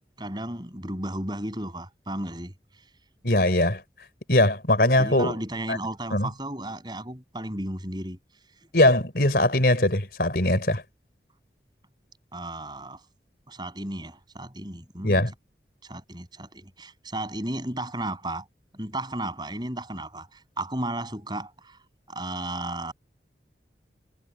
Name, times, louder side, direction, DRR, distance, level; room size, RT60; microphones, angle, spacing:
voice 1, 0.2-2.8 5.0-8.2 12.3-13.0 13.5-15.3 15.8-18.5 18.7-22.9, right 1 dB, 25° right, 7.1 m, -34 dB
voice 2, 3.2-3.8 4.3-5.3 5.7-5.8 6.1-6.3 8.7-10.8 15.0-15.3, left 1 dB, 60° left, 3.9 m, -21 dB
head